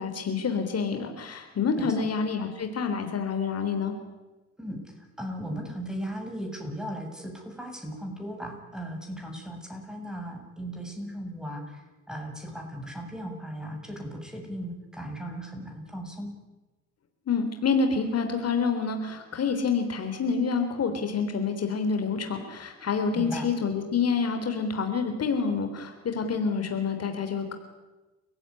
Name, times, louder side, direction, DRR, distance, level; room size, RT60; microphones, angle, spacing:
voice 1, 0.0-3.9 17.3-27.5, left 5 dB, 55° left, 6 dB, 3.6 m, -27 dB
voice 2, 5.2-11.8 12.1-16.3 23.1-23.5, equal, ahead, 2 dB, 7.9 m, -37 dB
30.0 x 16.0 x 9.9 m, 1.2 s
cardioid pair, 90°, 30 cm